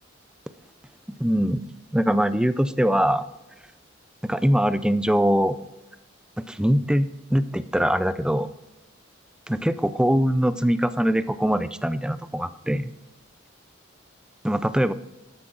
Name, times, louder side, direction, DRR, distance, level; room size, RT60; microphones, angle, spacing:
voice 1, 1.2-1.6 1.9-3.2 4.2-5.6 6.5-8.5 9.5-12.9 14.4-14.9, equal, 5° right, 13 dB, 0.4 m, -22 dB
13.5 x 9.9 x 3.9 m, 1.0 s
head